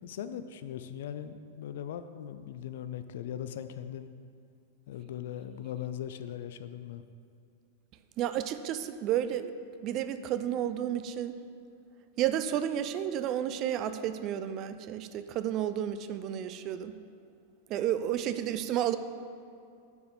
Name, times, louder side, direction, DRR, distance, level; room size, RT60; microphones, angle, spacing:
voice 1, 0.0-4.1 4.9-7.0, left 10 dB, 60° left, 11 dB, 0.4 m, -39 dB
voice 2, 8.2-9.5 9.8-11.4 12.2-16.9 17.7-19.0, right 10 dB, 40° right, 11 dB, 0.4 m, -31 dB
6.7 x 4.7 x 6.6 m, 2.5 s
figure-of-eight pair, 95°, 0 cm